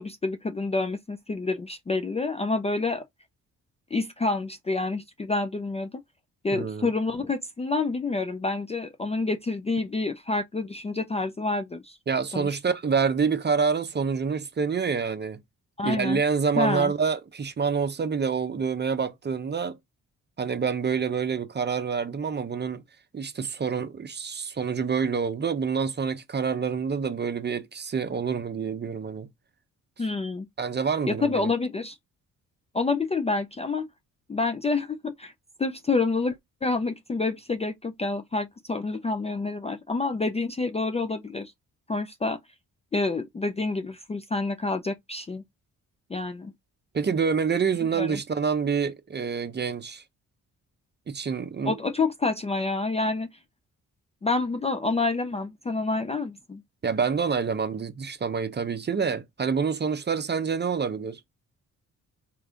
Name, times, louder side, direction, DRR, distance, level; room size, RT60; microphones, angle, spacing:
voice 1, 0.0-3.0 3.9-6.0 6.4-12.0 12.3-12.5 15.8-16.2 16.6-16.9 30.0-30.5 31.1-32.0 32.7-33.9 34.3-35.3 35.6-41.5 41.9-42.4 42.9-45.4 46.1-46.5 48.0-48.2 51.6-53.3 54.2-56.6, left 3 dB, 20° left, 0.4 m, -28 dB
voice 2, 6.5-6.9 12.1-15.4 15.8-19.8 20.4-22.8 23.1-29.3 30.6-31.5 46.9-50.0 51.1-51.8 56.8-61.2, right 6 dB, 30° right, 0.6 m, -27 dB
3.3 x 2.6 x 2.4 m
supercardioid pair, 55°, 35 cm